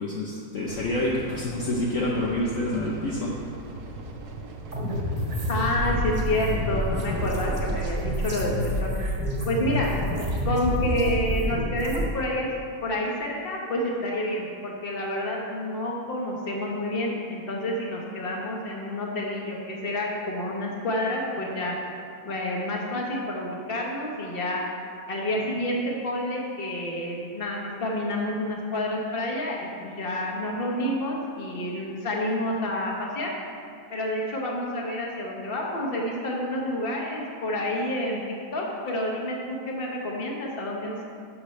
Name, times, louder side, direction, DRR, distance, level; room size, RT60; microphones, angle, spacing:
voice 1, 0.0-3.3, left 1 dB, 60° left, -4 dB, 1.1 m, -27 dB
sound 1, 0.6-8.8, right 3 dB, 75° right, 1.3 m, -40 dB
sound 2, 4.7-12.1, equal, 35° right, 1.6 m, -28 dB
voice 2, 5.5-8.9 9.4-9.9 10.4-12.5 12.8-21.7 22.2-24.6 25.1-33.3 33.9-38.2 38.5-41.0, left 1 dB, 40° left, -2 dB, 1.3 m, -29 dB
11.5 x 6.6 x 3.2 m, 2.4 s
omnidirectional pair, 1.7 m